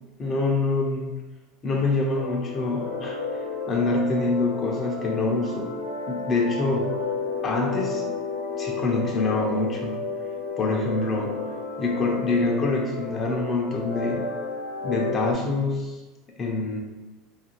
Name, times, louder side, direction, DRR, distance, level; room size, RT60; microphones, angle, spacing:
voice 1, 0.2-1.1 1.6-5.7 6.1-6.9 7.4-8.2 8.6-10.0 10.6-11.4 11.8-14.2 14.8-16.0 16.4-16.8, left 3 dB, 30° left, -1 dB, 0.4 m, -25 dB
sound 1, 2.1-15.3, left 4 dB, 70° left, 0.7 m, -32 dB
2.4 x 2.2 x 2.9 m, 1.1 s
supercardioid pair, 120°, 0 cm